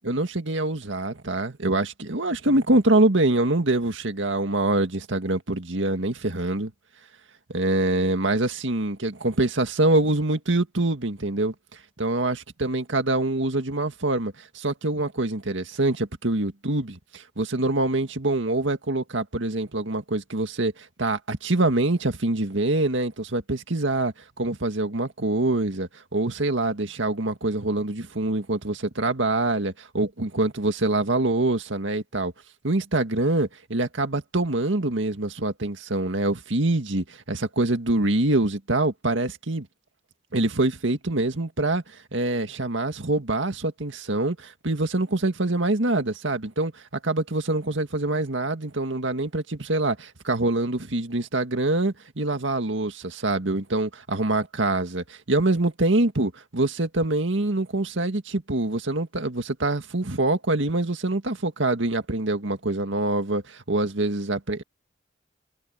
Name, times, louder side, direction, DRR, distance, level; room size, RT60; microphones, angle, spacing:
voice 1, 0.0-6.7 7.5-11.5 12.0-32.3 32.6-39.7 40.3-41.8 42.1-46.7 47.0-64.6, right 2 dB, 90° right, 2.0 m, -25 dB
head